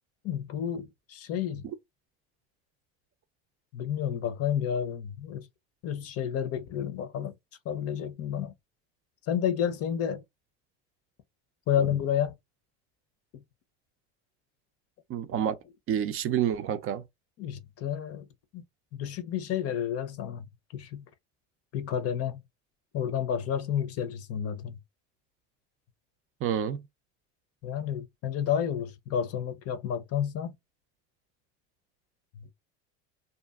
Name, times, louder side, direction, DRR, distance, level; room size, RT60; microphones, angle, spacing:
voice 1, 0.2-1.6 3.7-5.5 5.8-7.3 7.7-8.5 9.3-10.2 11.7-12.4 17.4-18.3 18.5-18.6 18.9-20.5 20.7-21.0 21.7-22.4 22.9-24.8 27.6-30.6 32.4-32.5, left 9 dB, 50° left, 0.6 m, -30 dB
voice 2, 15.1-15.6 15.9-17.0 26.4-26.8, right 9 dB, 45° right, 0.4 m, -28 dB
2.7 x 2.4 x 2.3 m
supercardioid pair, 90°, 32 cm